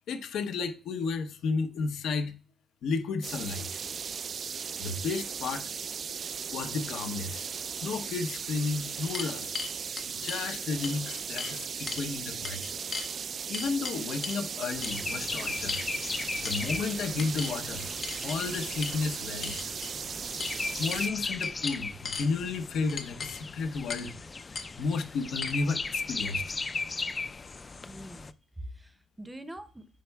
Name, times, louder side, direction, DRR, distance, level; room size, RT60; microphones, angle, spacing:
voice 1, 0.1-2.3 2.8-3.7 4.8-5.7 6.5-7.5 7.8-9.6 10.1-12.6 13.5-15.8 16.4-17.9 18.2-19.6 20.8-24.1 24.8-26.5, left 4 dB, 85° left, 0.8 m, -32 dB
sound 1, 3.2-21.1, right 6 dB, 50° right, 0.3 m, -37 dB
sound 2, 8.6-10.4 10.8-11.6 11.9-12.1 12.4-13.1 13.5-14.4 14.8-15.0 15.7-16.2 16.4-16.8 17.2-17.6 18.0-18.4 18.8-19.0 19.4-19.9 20.4-20.6 20.9-21.1 21.4-22.3 22.9-23.4 23.9-24.1 24.5-24.7 25.4-25.5, left 5 dB, 50° left, 1.0 m, -38 dB
sound 3, 14.7-28.3, left 4 dB, 30° left, 0.3 m, -37 dB
voice 2, 27.9-29.9, right 1 dB, 10° right, 0.6 m, -44 dB
10.0 x 5.3 x 2.3 m
cardioid pair, 105°, 0 cm